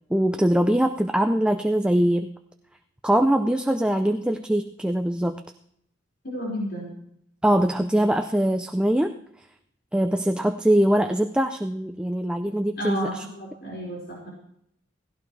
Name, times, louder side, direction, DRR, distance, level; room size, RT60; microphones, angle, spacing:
voice 1, 0.1-2.3 3.0-5.4 7.4-9.1 9.9-13.2, right 1 dB, 5° right, 6 dB, 0.5 m, -22 dB
voice 2, 6.2-6.9 12.8-14.3, equal, 60° left, -5 dB, 5.2 m, -31 dB
17.5 x 16.5 x 3.3 m, 0.72 s
head